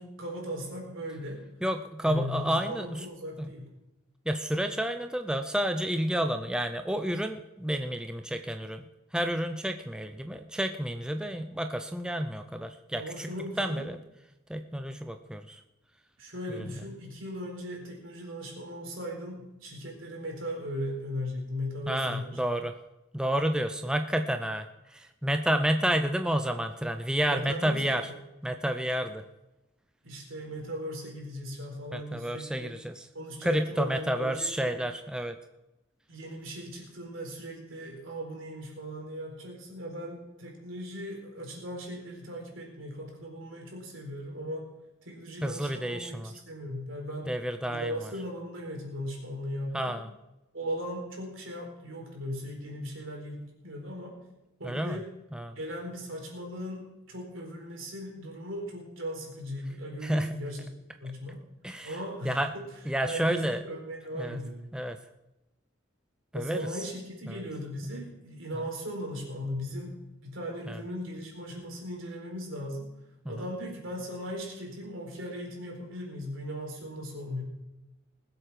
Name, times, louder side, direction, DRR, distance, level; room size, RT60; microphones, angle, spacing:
voice 1, 0.0-1.4 2.0-3.7 13.0-13.8 16.2-22.4 23.8-23.9 27.3-28.2 30.0-32.7 33.1-34.8 36.1-44.7 45.0-47.3 47.7-50.0 50.5-54.2 54.6-55.1 55.6-60.7 61.0-61.4 61.8-62.6 63.1-64.7 66.3-72.9 73.3-77.4, equal, 70° right, 1 dB, 4.3 m, -38 dB
voice 2, 1.6-3.1 3.4-3.5 4.3-8.8 9.1-13.3 13.6-14.0 14.5-15.6 16.5-16.6 21.9-22.7 23.1-28.1 28.4-29.2 31.9-33.1 33.4-35.4 45.4-46.3 47.2-48.1 49.7-50.1 54.6-55.0 55.3-55.6 60.0-60.4 61.6-62.0 62.2-62.5 62.9-63.6 64.2-64.4 64.7-65.0 66.3-66.7 67.3-67.4 70.7-70.8, right 1 dB, 5° right, 6 dB, 0.5 m, -30 dB
20.0 x 8.0 x 5.9 m, 0.99 s
head